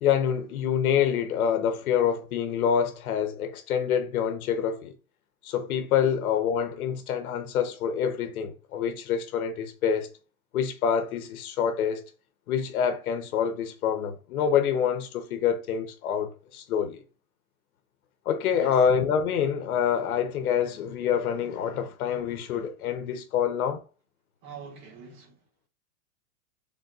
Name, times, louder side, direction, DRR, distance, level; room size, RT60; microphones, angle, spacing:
voice 1, 0.0-4.9 5.4-10.1 10.5-12.0 12.5-17.0 18.2-23.8, left 8 dB, 80° left, 0.9 m, -26 dB
voice 2, 24.4-25.4, right 6 dB, 45° right, 1.8 m, -44 dB
4.0 x 3.7 x 2.4 m
supercardioid pair, 160°, 43 cm